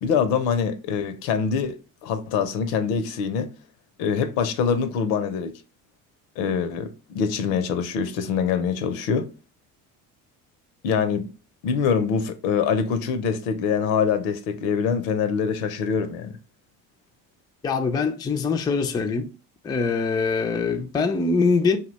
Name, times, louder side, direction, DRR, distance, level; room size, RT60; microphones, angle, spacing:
voice 1, 0.0-1.8 2.0-3.5 4.0-5.5 6.4-9.3 10.8-11.3 11.6-16.4, left 6 dB, 80° left, 0.6 m, -24 dB
voice 2, 17.6-19.3 19.6-21.8, left 4 dB, 10° left, 0.3 m, -23 dB
2.7 x 2.1 x 3.9 m
hypercardioid pair, 70°, 43 cm